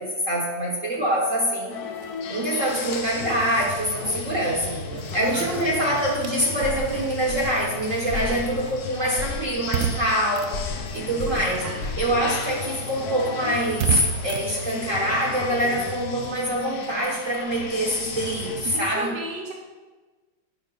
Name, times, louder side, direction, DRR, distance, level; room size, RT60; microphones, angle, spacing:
voice 1, 0.0-1.8 2.3-4.8 5.1-10.6 10.9-11.7 12.0-19.1, right 1 dB, 45° right, -3 dB, 1.2 m, -25 dB
sound 1, 1.7-18.8, left 5 dB, 65° left, 1.0 m, -35 dB
sound 2, 1.9-11.8 12.1-19.0, right 7 dB, 85° right, 0.7 m, -36 dB
voice 2, 4.6-5.8 8.1-8.4 11.1-12.0 18.6-19.5, right 3 dB, 65° right, 0 dB, 1.2 m, -36 dB
sound 3, 6.6-10.2 10.5-13.0, left 3 dB, 50° left, 1.5 m, -35 dB
11.0 x 5.9 x 3.9 m, 1.3 s
omnidirectional pair, 2.4 m